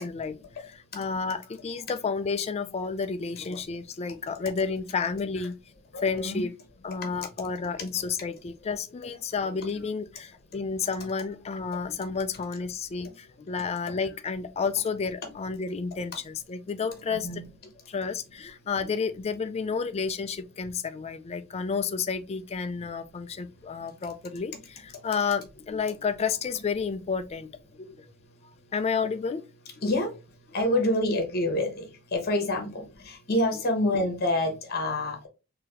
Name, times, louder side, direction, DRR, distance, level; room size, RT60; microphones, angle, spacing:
voice 1, 0.0-5.6 6.0-6.5 6.8-17.3 17.9-27.5 27.7-27.9 28.7-29.4 29.8-29.9 32.5-32.6, left 5 dB, 30° left, 0.3 m, -31 dB
voice 2, 5.9-6.4 17.1-17.4 29.8-30.1 30.5-35.3, left 1 dB, 45° left, 1.1 m, -27 dB
3.9 x 2.8 x 2.9 m
head